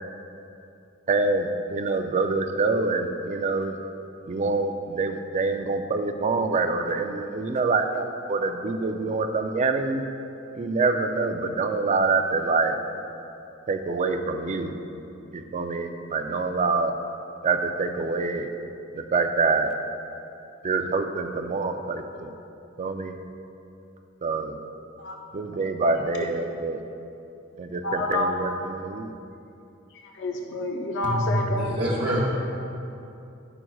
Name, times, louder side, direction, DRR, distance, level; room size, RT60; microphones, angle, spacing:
voice 1, 1.1-3.7 4.3-10.0 10.5-12.8 13.7-14.7 15.3-16.9 17.4-18.5 18.9-19.7 20.6-22.3 22.8-23.2 24.2-24.6 25.3-26.8 27.6-29.1, right 3 dB, 35° right, 6 dB, 0.4 m, -26 dB
voice 2, 25.8-26.3 27.8-28.3 29.9-31.6, left 2 dB, 55° left, 1 dB, 0.5 m, -29 dB
voice 3, 31.6-32.2, equal, 50° right, -8 dB, 0.9 m, -26 dB
11.0 x 5.9 x 2.3 m, 2.7 s
head